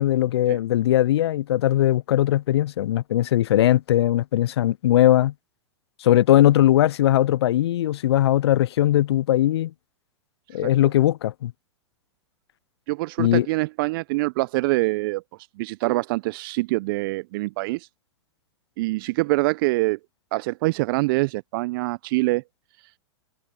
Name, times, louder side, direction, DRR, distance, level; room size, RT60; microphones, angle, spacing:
voice 1, 0.0-5.3 6.0-9.7 10.5-11.5 13.2-13.5, left 13 dB, 60° left, 0.8 m, -19 dB
voice 2, 12.9-15.2 15.6-17.9 18.8-20.0 20.3-22.4, right 22 dB, 50° right, 0.8 m, -24 dB
figure-of-eight pair, 105°, 15 cm